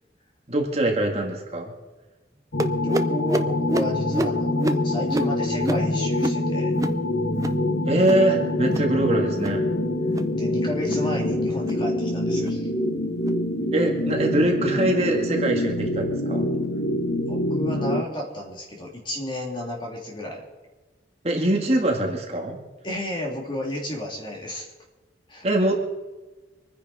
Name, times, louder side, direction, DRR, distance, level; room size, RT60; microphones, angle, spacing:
voice 1, 0.5-1.7 7.9-9.6 13.7-16.5 21.2-22.6 25.4-25.8, right 1 dB, 35° right, 1 dB, 2.0 m, -23 dB
sound 1, 2.5-18.0, left 1 dB, 60° left, 1.2 m, -25 dB
sound 2, 2.6-7.6 7.9-8.3 8.6-9.0 9.3-9.6 10.0-10.4 10.8-11.1 11.5-11.8 12.3-12.6 13.2-13.4 14.0-14.2 14.9-15.0 15.8-15.9, right 1 dB, 20° right, 0.6 m, -30 dB
voice 2, 2.8-6.7 10.3-12.7 17.3-20.5 22.8-24.7 25.3-25.5, left 1 dB, 25° left, -1 dB, 3.0 m, -32 dB
24.5 x 10.0 x 4.2 m, 1.2 s
head